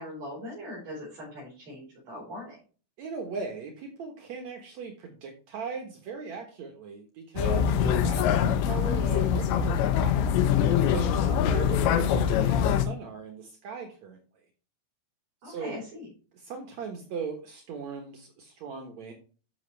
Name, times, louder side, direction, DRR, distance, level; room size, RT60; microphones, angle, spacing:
voice 1, 0.0-2.6 15.4-16.1, left 1 dB, 45° right, -7 dB, 6.0 m, -40 dB
voice 2, 3.0-10.3 10.9-14.2 15.4-15.8 16.3-19.1, right 5 dB, 90° right, 3 dB, 1.5 m, -39 dB
sound 1, 7.4-12.9, left 8 dB, 80° left, 3.2 m, -24 dB
13.0 x 6.2 x 3.3 m, 0.38 s
omnidirectional pair, 5.1 m